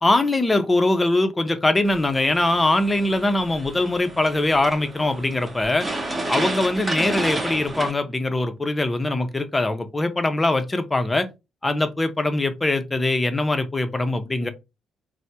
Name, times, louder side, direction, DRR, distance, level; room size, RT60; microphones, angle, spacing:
voice 1, 0.0-5.9 6.3-11.3 11.6-14.5, left 2 dB, 20° left, 0.5 m, -22 dB
sound 1, 1.8-7.9, right 2 dB, 20° right, 0.8 m, -31 dB
3.3 x 2.0 x 2.8 m
cardioid pair, 90°, 0 cm